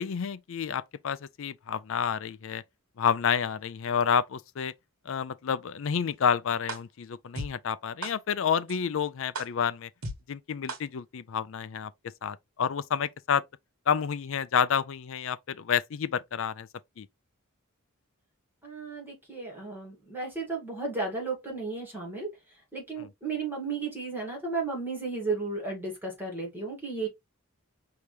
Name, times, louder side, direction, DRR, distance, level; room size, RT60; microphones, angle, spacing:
voice 1, 0.0-2.6 3.0-4.7 5.1-9.9 10.3-11.9 12.2-13.4 13.9-16.7 17.0-17.1 23.0-23.1, left 7 dB, 65° left, 0.4 m, -29 dB
sound 1, 6.7-6.8 7.4-7.5 8.0-8.1 8.7-8.8 9.3-9.5 10.0-10.1 10.7-10.8, right 2 dB, 85° right, 1.2 m, -34 dB
voice 2, 18.6-22.3 22.7-27.1, right 4 dB, 10° right, 2.1 m, -34 dB
4.9 x 2.8 x 3.2 m
head